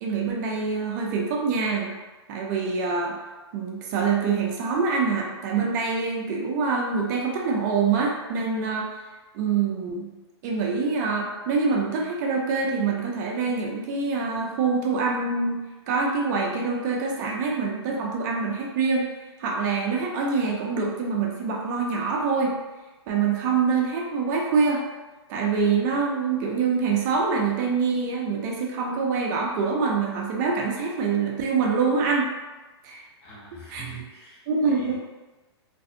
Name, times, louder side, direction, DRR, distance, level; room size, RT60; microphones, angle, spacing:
voice 1, 0.0-1.9 2.3-3.2 3.5-8.9 9.3-10.1 10.4-15.6 15.9-19.0 19.4-22.5 23.1-24.8 25.3-32.3 32.8-33.0 33.7-33.8 34.5-34.9, right 5 dB, 40° right, -1 dB, 0.5 m, -25 dB
voice 2, 33.2-34.9, right 3 dB, 60° left, -7 dB, 1.3 m, -42 dB
2.6 x 2.3 x 2.6 m, 1.2 s
hypercardioid pair, 125°, 14 cm